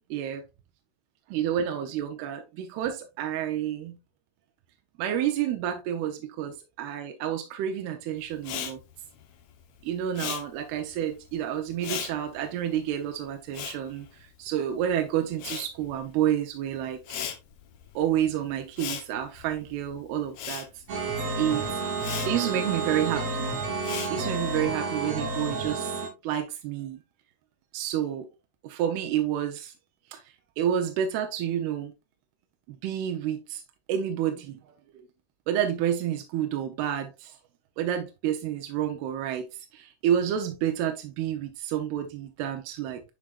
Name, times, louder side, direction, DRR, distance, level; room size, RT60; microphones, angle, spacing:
voice 1, 0.1-0.4 1.3-4.0 5.0-8.8 9.8-17.3 18.0-21.8 22.2-23.5 24.1-25.9 26.2-27.0 27.7-28.3 28.6-29.7 30.1-30.2 30.6-31.9 32.7-33.6 33.9-34.6 35.5-37.4 37.8-43.0, right 10 dB, 85° right, 2.8 m, -29 dB
Respiratory sounds, 8.4-14.9 15.1-24.6, left 9 dB, 85° left, 1.5 m, -39 dB
sound 1, 20.9-26.1, right 3 dB, 50° right, 3.4 m, -30 dB
10.0 x 4.8 x 2.4 m
omnidirectional pair, 4.5 m